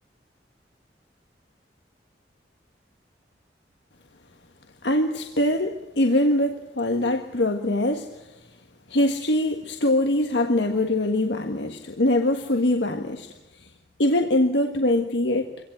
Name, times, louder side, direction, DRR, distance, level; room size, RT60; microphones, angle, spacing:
voice 1, 4.8-8.1 8.9-13.3 14.0-15.6, left 1 dB, 85° left, 5 dB, 1.6 m, -23 dB
25.5 x 17.5 x 8.0 m, 1.0 s
head